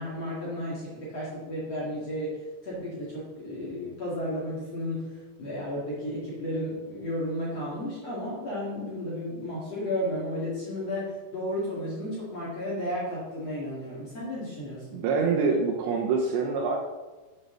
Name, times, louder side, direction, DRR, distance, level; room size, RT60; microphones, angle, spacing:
voice 1, 0.0-5.1 5.4-15.0, left 1 dB, 45° left, -7 dB, 2.2 m, -33 dB
voice 2, 14.9-16.8, right 4 dB, 80° right, 1 dB, 2.7 m, -25 dB
8.0 x 6.5 x 6.4 m, 1.2 s
omnidirectional pair, 5.7 m